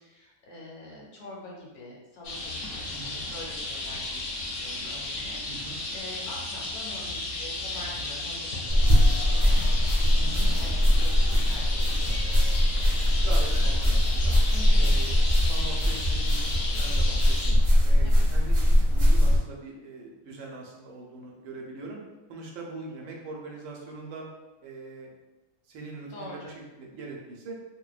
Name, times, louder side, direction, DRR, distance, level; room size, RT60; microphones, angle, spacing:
voice 1, 0.0-9.6 10.6-12.2 14.5-15.0 18.0-18.3 26.1-26.5, left 2 dB, 85° left, -3 dB, 1.2 m, -45 dB
sound 1, 2.2-17.5, left 2 dB, 65° left, 0.9 m, -34 dB
voice 2, 5.4-5.8 10.2-10.5 13.2-14.4 14.7-15.2 15.5-17.6 17.8-22.0 22.3-24.2 24.6-25.1 25.7-27.6, right 3 dB, 70° right, -1 dB, 0.8 m, -41 dB
sound 2, 8.7-19.4, left 1 dB, 40° right, 0.4 m, -21 dB
2.6 x 2.1 x 2.3 m, 1.1 s
omnidirectional pair, 1.6 m